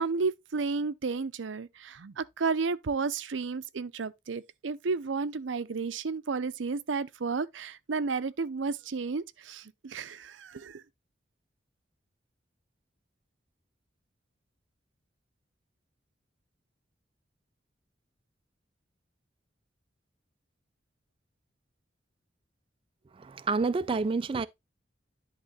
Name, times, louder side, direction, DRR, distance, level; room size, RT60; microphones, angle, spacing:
voice 1, 0.0-10.8, right 4 dB, 90° right, 0.6 m, -32 dB
voice 2, 23.1-24.5, right 4 dB, 30° right, 0.3 m, -28 dB
10.5 x 3.7 x 4.0 m
head